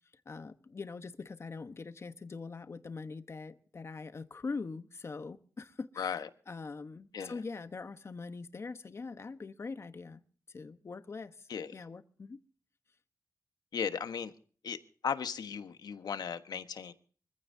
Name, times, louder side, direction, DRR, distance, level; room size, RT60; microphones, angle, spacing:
voice 1, 0.2-10.2 10.5-12.4, left 4 dB, 40° left, 1.1 m, -43 dB
voice 2, 6.0-6.3 7.1-7.3 11.5-11.7 13.7-14.3 14.6-14.8 15.0-16.9, left 7 dB, 80° left, 1.3 m, -36 dB
25.0 x 15.0 x 2.8 m
wide cardioid pair, 120°, 7 cm